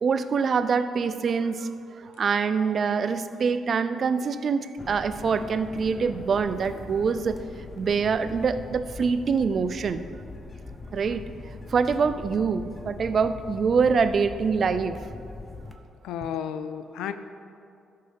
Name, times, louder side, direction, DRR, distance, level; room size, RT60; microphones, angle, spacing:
voice 1, 0.0-7.4 7.8-10.1 10.9-11.3 11.7-15.0, right 5 dB, 50° right, 12 dB, 0.5 m, -25 dB
sound 1, 4.8-15.7, left 3 dB, 20° left, 0.9 m, -41 dB
voice 2, 16.0-17.1, left 9 dB, 90° left, 10 dB, 0.5 m, -32 dB
12.5 x 5.7 x 5.3 m, 2.5 s
cardioid pair, 90°, 0 cm